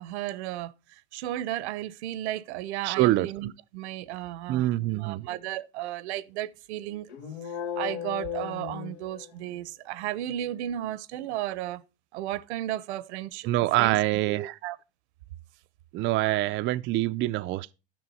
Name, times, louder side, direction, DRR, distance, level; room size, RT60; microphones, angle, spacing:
voice 1, 0.0-7.1 7.8-11.8 12.1-13.5 13.8-14.0 14.4-14.8, right 13 dB, 75° right, 0.7 m, -34 dB
voice 2, 2.8-3.3 4.5-5.3 13.5-14.6 15.9-17.7, right 16 dB, 35° right, 0.4 m, -25 dB
sound 1, 7.1-9.7, left 9 dB, 80° left, 1.3 m, -36 dB
11.5 x 6.1 x 4.1 m
hypercardioid pair, 100°, 34 cm